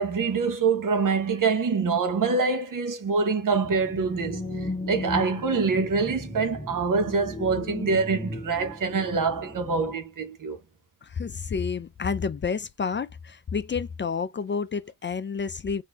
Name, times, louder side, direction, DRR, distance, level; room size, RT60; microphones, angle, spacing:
voice 1, 0.0-10.6, right 4 dB, 70° right, 1.1 m, -25 dB
sound 1, 3.5-10.0, left 1 dB, 10° left, 0.9 m, -36 dB
voice 2, 11.0-15.8, left 5 dB, 35° left, 0.4 m, -30 dB
4.2 x 2.6 x 3.4 m
wide cardioid pair, 165°, 33 cm